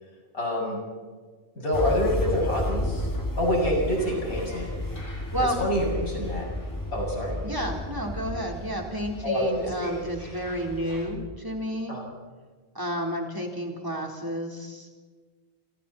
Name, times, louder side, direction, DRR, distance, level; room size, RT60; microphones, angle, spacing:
voice 1, 0.3-0.8 1.5-3.1 3.4-4.7 5.6-6.5 6.9-7.4 9.2-10.0 11.9-12.0, equal, 85° left, -1 dB, 7.9 m, -27 dB
sound 1, 1.7-11.4, left 1 dB, 15° left, 1.5 m, -33 dB
sound 2, 4.0-11.1, equal, 40° left, 7.0 m, -51 dB
voice 2, 7.4-12.0 12.7-15.0, equal, 15° right, 0 dB, 4.1 m, -31 dB
29.0 x 27.0 x 4.4 m, 1.5 s
omnidirectional pair, 1.4 m